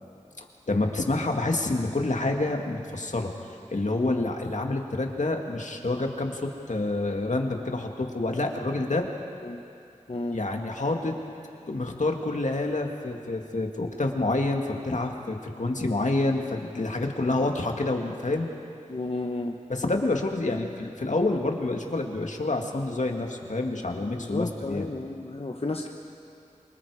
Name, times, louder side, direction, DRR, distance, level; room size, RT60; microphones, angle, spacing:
voice 1, 0.4-3.3 3.7-9.1 10.3-11.1 11.7-18.5 19.7-24.9, left 2 dB, 70° left, 2 dB, 2.1 m, -28 dB
voice 2, 4.0-4.3 9.4-9.6 10.1-10.4 17.2-17.5 18.9-19.6 24.2-25.9, left 2 dB, 50° left, 2 dB, 1.1 m, -32 dB
27.5 x 25.0 x 5.0 m, 2.6 s
wide cardioid pair, 55°, 13 cm